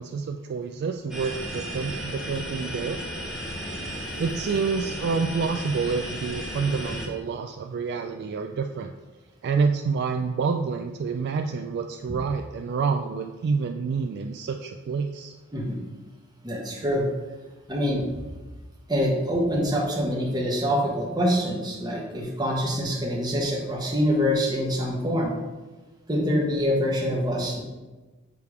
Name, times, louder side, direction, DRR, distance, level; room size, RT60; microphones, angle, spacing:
voice 1, 0.0-3.0 4.0-8.9 9.4-15.4, right 5 dB, 50° right, 5 dB, 0.3 m, -28 dB
sound 1, 1.1-7.1, equal, 5° right, 1.0 m, -34 dB
voice 2, 15.5-15.8 16.4-17.1 17.7-18.0 18.9-25.4 26.1-27.6, equal, 20° right, -2 dB, 1.2 m, -25 dB
6.7 x 3.5 x 4.7 m, 1.2 s
head